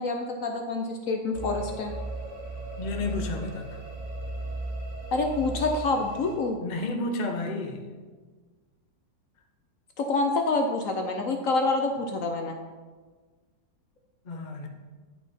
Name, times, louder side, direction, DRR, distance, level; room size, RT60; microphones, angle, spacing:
voice 1, 0.0-1.9 5.1-6.6 10.0-12.6, left 3 dB, 60° left, 4 dB, 1.0 m, -27 dB
sound 1, 1.3-6.3, right 2 dB, 70° right, 2.7 m, -36 dB
voice 2, 2.8-3.8 6.6-7.8 14.2-14.7, left 2 dB, 40° left, 4 dB, 0.7 m, -31 dB
10.5 x 5.9 x 4.2 m, 1.4 s
omnidirectional pair, 1.9 m